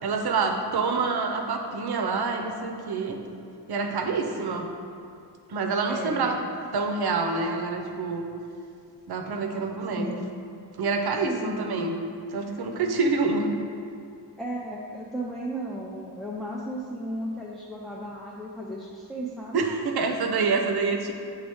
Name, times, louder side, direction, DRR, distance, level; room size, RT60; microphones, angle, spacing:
voice 1, 0.0-3.2 3.7-4.7 5.5-6.4 6.7-8.3 9.1-10.1 10.8-12.0 12.3-13.5 19.5-21.1, right 4 dB, 65° right, 4 dB, 0.7 m, -27 dB
voice 2, 4.0-4.4 5.9-6.4 10.0-10.3 11.3-11.9 14.4-19.7, right 1 dB, ahead, -6 dB, 0.4 m, -35 dB
8.0 x 3.5 x 3.5 m, 2.5 s
wide cardioid pair, 150°, 41 cm